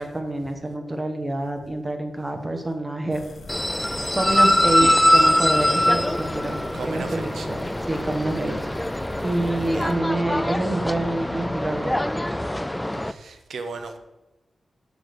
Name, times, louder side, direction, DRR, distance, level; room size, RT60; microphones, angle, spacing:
voice 1, 0.0-3.2 4.1-6.6 6.9-8.6 9.2-12.0, right 1 dB, 20° right, 1.2 m, -27 dB
sound 1, 3.1-10.0, left 3 dB, 60° left, 0.9 m, -41 dB
sound 2, 3.5-13.1, left 1 dB, 10° left, 0.3 m, -23 dB
voice 2, 6.7-7.5 9.6-9.9 13.0-14.0, right 4 dB, 90° right, 0.8 m, -35 dB
6.3 x 4.8 x 6.8 m
wide cardioid pair, 100°, 0 cm